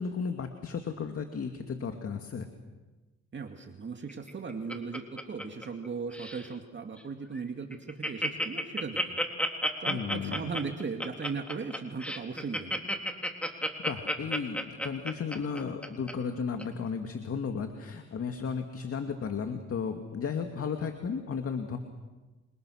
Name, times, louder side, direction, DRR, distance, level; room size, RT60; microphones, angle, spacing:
voice 1, 0.0-2.5 9.9-10.4 13.8-21.8, left 6 dB, 50° left, 5 dB, 2.4 m, -34 dB
voice 2, 3.3-9.2 9.8-12.8, right 5 dB, 40° right, 4 dB, 2.4 m, -37 dB
Laughter, 4.1-5.9 6.1-6.5 7.0-7.1 7.3-7.4 7.7-16.1 16.6-16.7, equal, 5° left, 3.5 m, -31 dB
27.5 x 27.5 x 6.5 m, 1.2 s
cardioid pair, 90°, 30 cm